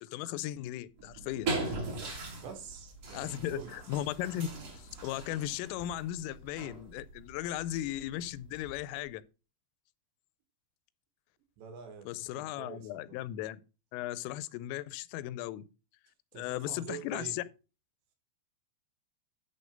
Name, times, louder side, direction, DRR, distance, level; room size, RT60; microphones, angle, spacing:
voice 1, 0.0-1.7 3.1-4.5 4.7-9.2 12.1-13.6 13.9-15.7 16.4-17.4, left 13 dB, 90° left, 3.2 m, -37 dB
sound 1, 1.0-9.1, right 3 dB, 40° right, 2.8 m, -41 dB
voice 2, 2.4-3.7 11.6-13.2 16.3-17.4, right 7 dB, 70° right, 3.4 m, -46 dB
10.5 x 4.0 x 5.1 m
omnidirectional pair, 5.7 m